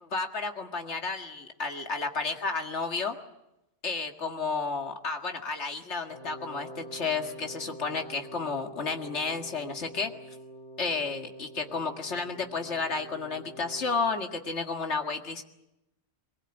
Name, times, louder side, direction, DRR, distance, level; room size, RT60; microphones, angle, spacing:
voice 1, 0.0-3.2 3.8-10.1 10.8-15.4, left 4 dB, 80° left, 4 dB, 2.3 m, -32 dB
Wind instrument woodwind instrument, 6.1-14.1, right 1 dB, 30° right, 7.8 m, -46 dB
23.0 x 21.0 x 9.0 m, 0.89 s
omnidirectional pair, 1.1 m